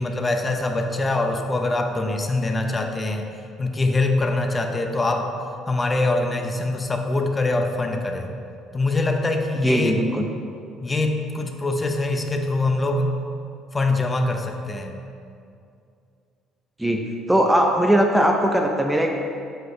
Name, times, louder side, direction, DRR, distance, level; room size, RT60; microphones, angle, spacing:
voice 1, 0.0-3.3 3.6-5.3 5.7-8.3 8.7-9.9 10.8-13.1 13.7-15.0, left 2 dB, 20° left, 4 dB, 0.9 m, -23 dB
voice 2, 9.6-10.3 16.8-17.0 17.3-19.1, equal, 5° right, 2 dB, 0.7 m, -19 dB
12.0 x 8.0 x 3.4 m, 2.5 s
cardioid pair, 105°, 0 cm